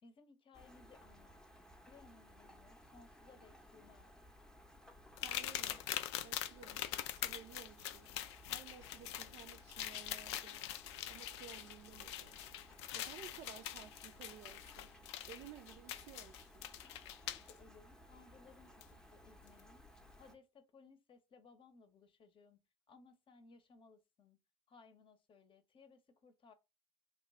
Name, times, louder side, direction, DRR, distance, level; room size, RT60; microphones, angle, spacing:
voice 1, 0.0-1.4 1.9-4.1 17.1-19.9 20.2-22.6 22.9-24.4 24.7-26.5, left 4 dB, 35° left, 0.8 m, -63 dB
Rain, 0.5-20.4, equal, 5° left, 0.7 m, -60 dB
sound 1, 5.2-17.5 18.8-18.9 19.5-19.6, left 12 dB, 70° left, 0.4 m, -44 dB
voice 2, 5.2-5.8 6.2-6.9 7.2-8.1 8.5-10.6 11.1-12.4 12.9-14.9 15.3-16.7, right 9 dB, 50° right, 0.5 m, -55 dB
3.0 x 2.2 x 4.1 m
hypercardioid pair, 65°, 15 cm